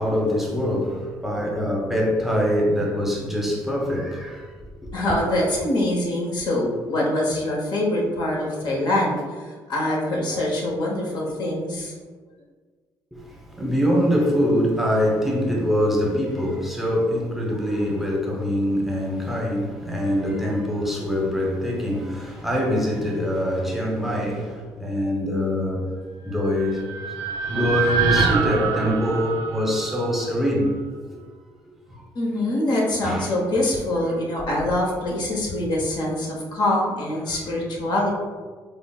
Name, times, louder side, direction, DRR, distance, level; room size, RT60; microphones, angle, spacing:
voice 1, 0.0-4.9 13.1-25.9 26.2-26.8 27.5-30.8 31.9-32.0 33.0-33.3 37.3-37.4, equal, 5° right, 0.9 m, -24 dB
voice 2, 4.9-11.9 32.1-38.1, left 1 dB, 60° left, 1.0 m, -24 dB
sound 1, 26.4-30.7, right 5 dB, 80° right, 0.5 m, -25 dB
5.1 x 2.1 x 2.3 m
supercardioid pair, 60°, 8 cm